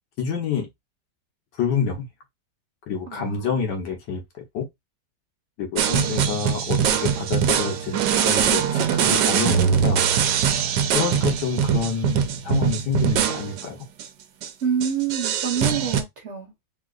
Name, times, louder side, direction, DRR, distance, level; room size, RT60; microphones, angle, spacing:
voice 1, 0.2-0.7 1.6-2.0 2.9-4.2 4.5-4.7 5.6-10.0 10.9-13.8, left 6 dB, 75° left, 1.6 m, -28 dB
voice 2, 3.1-3.7 14.6-16.6, right 7 dB, 50° right, 1.1 m, -27 dB
sound 1, 5.8-13.7 14.0-14.1 14.4-14.5 14.8-16.0, right 8 dB, 80° right, 1.2 m, -22 dB
3.8 x 2.8 x 2.4 m
omnidirectional pair, 1.9 m